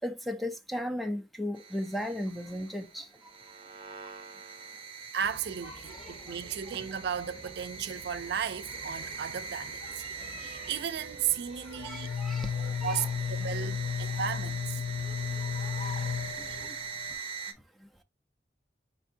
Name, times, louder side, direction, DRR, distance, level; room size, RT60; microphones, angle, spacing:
voice 1, 0.0-3.1 5.9-6.1 11.6-12.5 12.8-13.1, left 1 dB, ahead, 0.4 m, -35 dB
sound 1, 1.5-17.5, right 5 dB, 30° right, 0.7 m, -43 dB
voice 2, 5.1-9.8 10.4-12.1 12.5-14.8, right 8 dB, 65° right, 0.4 m, -35 dB
sound 2, 5.2-16.7, left 1 dB, 40° left, 1.2 m, -49 dB
sound 3, 11.8-17.1, left 7 dB, 75° left, 0.4 m, -34 dB
4.4 x 3.4 x 2.6 m
head